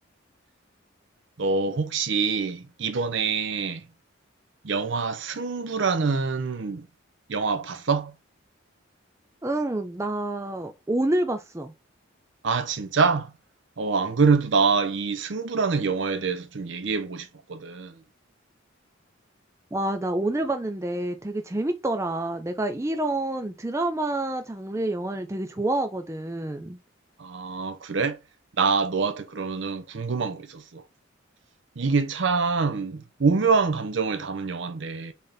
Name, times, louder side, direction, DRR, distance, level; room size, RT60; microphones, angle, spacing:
voice 1, 1.4-3.8 4.6-6.9 7.3-8.1 12.4-13.3 13.8-18.0 27.2-28.2 28.6-30.8 31.8-35.1, right 4 dB, 60° right, 0.6 m, -25 dB
voice 2, 9.4-11.7 19.7-26.8, right 1 dB, 15° right, 0.5 m, -28 dB
4.1 x 3.5 x 3.6 m
head